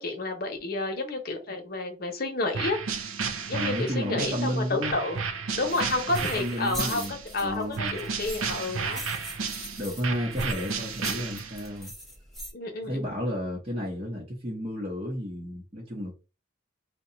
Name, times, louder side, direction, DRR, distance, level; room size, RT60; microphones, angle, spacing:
voice 1, 0.0-2.8 3.5-5.2 5.5-9.0 12.5-13.2, left 2 dB, 50° left, 0.8 m, -30 dB
sound 1, 2.5-7.3 7.8-11.7, right 5 dB, 90° right, 0.6 m, -33 dB
voice 2, 3.5-5.0 6.2-7.1 7.4-8.0 9.8-11.9 12.8-16.2, equal, 30° right, 0.8 m, -32 dB
sound 2, 5.7-12.5, equal, ahead, 0.8 m, -41 dB
2.7 x 2.2 x 3.9 m
head